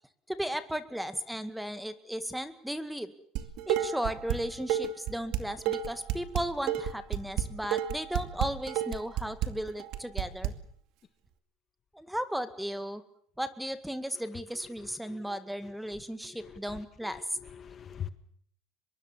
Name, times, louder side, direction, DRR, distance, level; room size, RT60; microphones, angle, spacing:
voice 1, 0.3-3.1 3.7-10.5 11.9-13.0 13.4-17.2, equal, ahead, 11 dB, 1.9 m, -35 dB
Dishes pots and pans, 3.4-4.4 4.7-10.5, right 11 dB, 65° right, 2.3 m, -30 dB
voice 2, 16.3-16.8 17.1-18.1, left 9 dB, 35° left, 11 dB, 1.6 m, -43 dB
24.5 x 22.0 x 7.4 m, 0.65 s
supercardioid pair, 115°, 0 cm